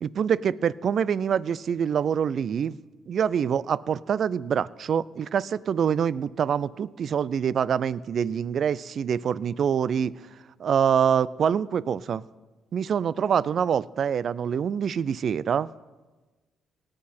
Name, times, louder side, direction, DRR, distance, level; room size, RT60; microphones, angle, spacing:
voice 1, 0.0-2.8 3.1-10.1 10.6-12.2 12.7-15.7, right 8 dB, 55° right, 21 dB, 0.3 m, -25 dB
18.0 x 7.6 x 4.3 m, 1.2 s
cardioid pair, 90°, 0 cm